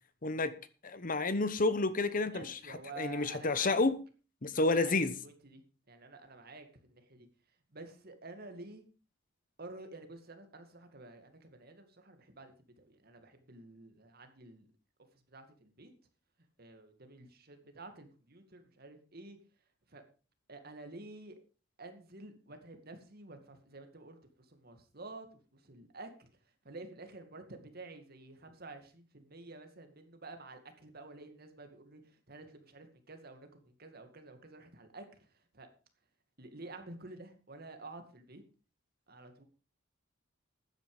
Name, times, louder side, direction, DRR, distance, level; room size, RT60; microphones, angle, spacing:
voice 1, 0.2-0.5 0.8-4.0 4.4-5.1, left 3 dB, 45° left, 1.0 m, -30 dB
voice 2, 2.3-3.9 4.6-5.6 5.9-7.3 7.7-8.8 9.6-14.7 15.3-15.9 16.6-19.4 19.9-20.0 20.5-21.4 21.8-26.3 26.6-35.7 36.4-38.4 39.1-39.4, right 2 dB, 50° right, 2.3 m, -50 dB
13.0 x 9.8 x 5.0 m
head